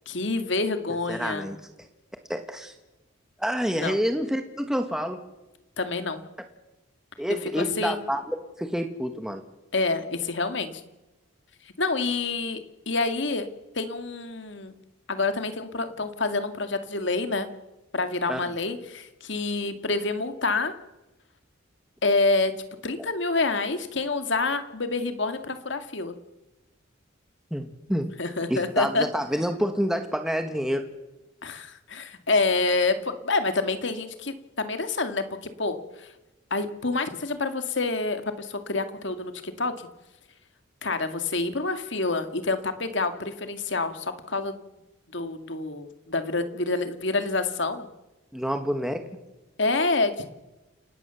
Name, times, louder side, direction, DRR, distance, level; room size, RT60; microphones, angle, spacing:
voice 1, 0.1-1.5 3.8-4.0 5.8-6.2 7.4-8.0 9.7-10.8 11.8-13.5 13.7-14.7 15.1-17.5 17.9-20.7 22.0-22.5 22.8-26.1 28.2-29.1 31.4-36.1 36.5-39.7 40.8-44.6 45.1-47.9 49.6-50.3, left 3 dB, 60° left, 8 dB, 2.1 m, -27 dB
voice 2, 1.1-1.7 2.3-2.7 3.4-5.2 7.2-9.4 18.3-18.4 27.5-28.1 28.5-30.9 48.3-49.0, equal, 5° right, 6 dB, 1.5 m, -28 dB
29.0 x 17.5 x 7.0 m, 1.0 s
head